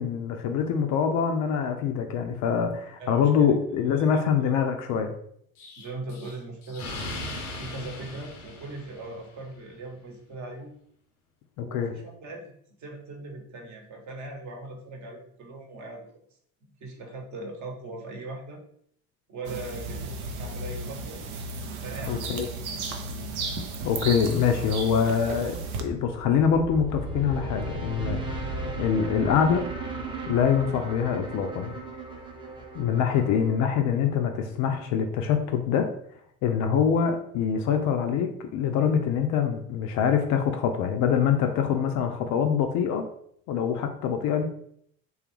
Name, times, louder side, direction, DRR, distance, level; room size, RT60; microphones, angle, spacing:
voice 1, 0.0-5.1 11.6-11.9 22.1-22.5 23.8-29.7 30.3-31.8 32.7-35.9 36.4-43.1 43.5-44.4, left 7 dB, 45° left, 5 dB, 0.4 m, -25 dB
voice 2, 3.0-3.5 3.8-4.0 4.4-4.5 5.8-6.9 7.5-10.7 11.6-12.5 12.8-16.0 16.8-18.6 19.3-21.2 21.8-22.2, right 2 dB, 40° right, 1 dB, 0.9 m, -39 dB
Explosion, 5.6-9.4, left 2 dB, 85° left, 0.6 m, -38 dB
sound 1, 19.4-25.8, right 3 dB, 75° right, 0.6 m, -34 dB
sound 2, 25.9-34.9, right 2 dB, 10° right, 0.7 m, -36 dB
3.2 x 2.3 x 3.0 m, 0.67 s
figure-of-eight pair, 60°, 44 cm